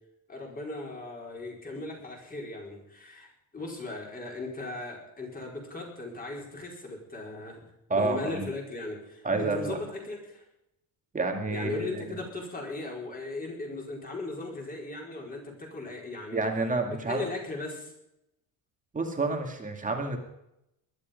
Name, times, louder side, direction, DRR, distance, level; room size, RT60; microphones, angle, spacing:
voice 1, 0.3-7.6 7.9-10.4 11.5-16.4 16.9-17.9, left 2 dB, 20° left, -1 dB, 4.8 m, -38 dB
voice 2, 7.9-8.4 9.2-9.8 11.1-12.2 16.3-17.3 18.9-20.2, right 3 dB, 20° right, 3 dB, 2.4 m, -29 dB
21.0 x 12.0 x 5.3 m, 0.84 s
cardioid pair, 155°, 42 cm